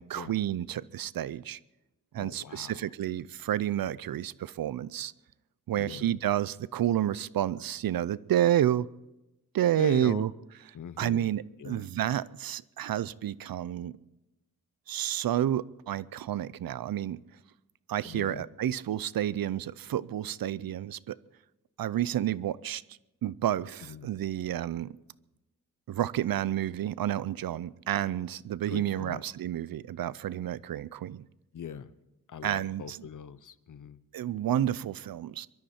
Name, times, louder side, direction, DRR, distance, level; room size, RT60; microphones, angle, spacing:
voice 1, 0.0-1.6 2.1-5.1 5.7-8.9 9.5-10.3 11.0-14.0 14.9-17.2 17.9-21.2 21.8-22.8 23.2-25.0 25.9-31.3 32.4-33.1 34.1-35.5, right 11 dB, 80° right, 0.5 m, -30 dB
voice 2, 2.2-2.8 5.7-6.1 9.8-10.2 10.7-11.3 11.6-11.9 18.1-18.4 23.9-24.1 28.7-29.2 31.5-31.9 32.3-34.0, left 7 dB, 60° left, 0.7 m, -41 dB
23.5 x 13.0 x 4.3 m
wide cardioid pair, 145°, 35 cm